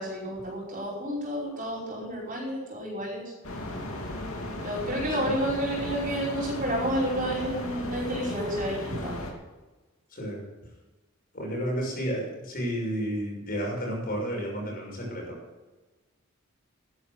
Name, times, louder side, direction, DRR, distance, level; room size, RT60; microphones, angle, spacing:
voice 1, 0.0-3.2 4.6-9.2, equal, 40° right, -4 dB, 5.3 m, -30 dB
sound 1, 3.4-9.3, left 1 dB, 85° left, 2.7 m, -35 dB
voice 2, 10.1-10.5 11.3-15.3, equal, 45° left, -2 dB, 6.1 m, -31 dB
12.5 x 11.0 x 6.6 m, 1.2 s
head